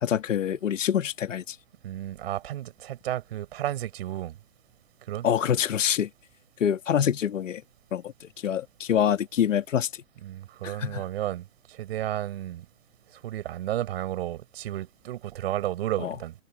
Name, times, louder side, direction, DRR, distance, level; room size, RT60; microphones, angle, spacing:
voice 1, 0.0-1.6 5.2-6.1 6.6-7.6 7.9-8.1 8.4-9.9 10.6-11.0 16.0-16.1, left 9 dB, 70° left, 1.9 m, -25 dB
voice 2, 1.8-4.4 5.1-5.3 10.2-12.7 13.2-16.3, right 13 dB, 50° right, 5.2 m, -32 dB
hypercardioid pair, 145°, 39 cm